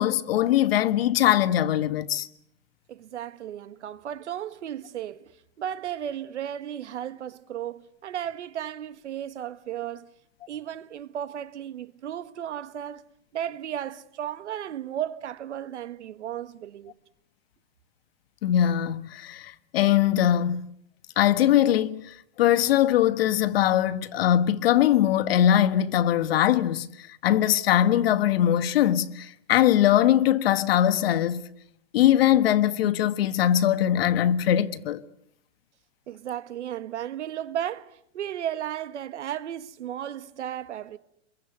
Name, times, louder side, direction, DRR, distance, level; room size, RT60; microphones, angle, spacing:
voice 1, 0.0-2.3 18.4-20.7 21.2-22.1 22.4-31.5 31.9-35.0, left 11 dB, 55° left, 1.3 m, -21 dB
voice 2, 2.9-5.3 5.6-10.1 10.5-13.0 13.3-16.9 36.1-41.0, right 10 dB, 90° right, 1.6 m, -34 dB
27.5 x 22.5 x 8.1 m
supercardioid pair, 165°, 34 cm